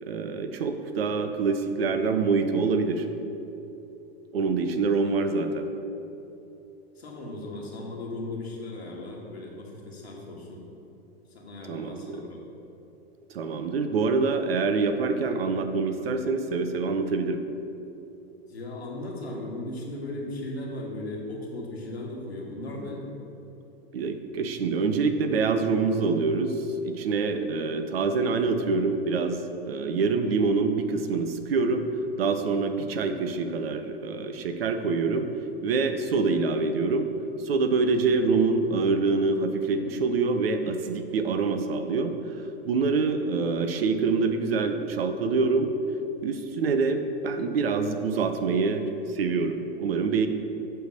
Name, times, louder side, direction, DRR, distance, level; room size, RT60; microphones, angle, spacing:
voice 1, 0.0-3.0 4.3-5.7 11.7-12.2 13.3-17.5 23.9-31.9 32.2-35.3 35.6-37.1 37.4-42.2 42.7-45.7 46.2-50.3, right 4 dB, 70° right, 8 dB, 0.7 m, -25 dB
voice 2, 6.9-10.6 11.3-12.4 18.5-23.0, left 2 dB, 80° left, -2 dB, 1.6 m, -37 dB
7.8 x 3.5 x 6.4 m, 2.9 s
figure-of-eight pair, 100°, 31 cm